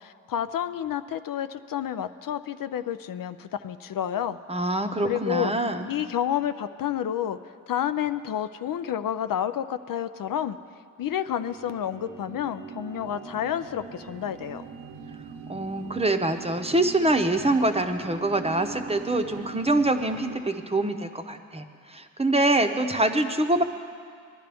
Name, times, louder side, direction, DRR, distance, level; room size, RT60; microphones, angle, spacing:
voice 1, 0.0-4.4 5.0-5.5 5.9-7.4 7.7-10.6 11.0-14.6, left 10 dB, 70° left, 11 dB, 0.5 m, -30 dB
voice 2, 4.5-5.9 15.5-21.6 21.9-23.6, right 2 dB, 15° right, 6 dB, 0.8 m, -24 dB
sound 1, 11.3-20.4, right 5 dB, 75° right, 1.0 m, -42 dB
20.0 x 11.5 x 3.5 m, 2.2 s
cardioid pair, 70°, 35 cm